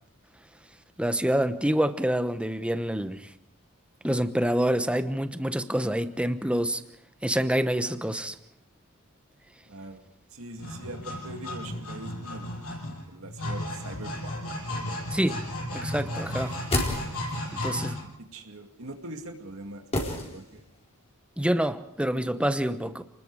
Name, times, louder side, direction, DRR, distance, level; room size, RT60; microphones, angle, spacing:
voice 1, 1.0-3.3 4.0-6.8 7.2-8.3 15.1-15.4 15.7-16.5 17.5-18.0 21.4-23.0, equal, 5° right, 1.0 m, -27 dB
voice 2, 9.7-10.0 10.3-12.6 13.1-14.4 14.7-15.3 18.0-20.6, right 2 dB, 70° right, 2.4 m, -43 dB
sound 1, 10.5-18.0, left 1 dB, 85° left, 7.3 m, -34 dB
sound 2, 16.3-17.5 19.9-20.8 21.1-21.2, left 1 dB, 30° left, 4.4 m, -31 dB
30.0 x 20.5 x 4.9 m
head